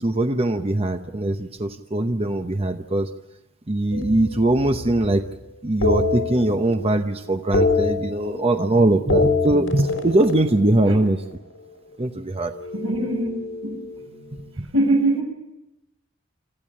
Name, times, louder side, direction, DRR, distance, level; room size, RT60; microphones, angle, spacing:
voice 1, 0.0-3.1 3.7-5.2 5.6-11.2 12.0-12.5 14.3-14.7, right 1 dB, 30° right, 7 dB, 0.8 m, -21 dB
sound 1, 3.9-5.2 5.8-7.0 7.2-8.7 9.0-11.3 12.5-14.3, left 3 dB, 75° left, 4.5 m, -26 dB
voice 2, 12.7-13.8 14.7-15.2, right 2 dB, 80° right, 2 dB, 7.2 m, -22 dB
27.0 x 14.5 x 8.6 m, 0.90 s
head